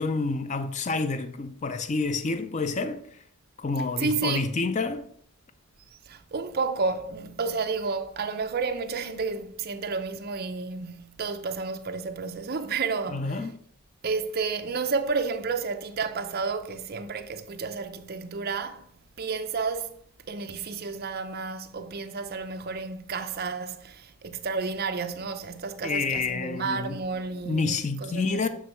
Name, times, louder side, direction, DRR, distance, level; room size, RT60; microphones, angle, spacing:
voice 1, 0.0-3.2 3.6-5.1 13.1-13.5 25.8-27.0 27.5-28.5, left 3 dB, 35° left, 0.4 m, -28 dB
voice 2, 4.0-4.4 5.9-13.4 14.0-18.8 19.2-19.9 20.3-28.5, right 4 dB, 45° right, 0.6 m, -31 dB
7.4 x 3.4 x 5.4 m
head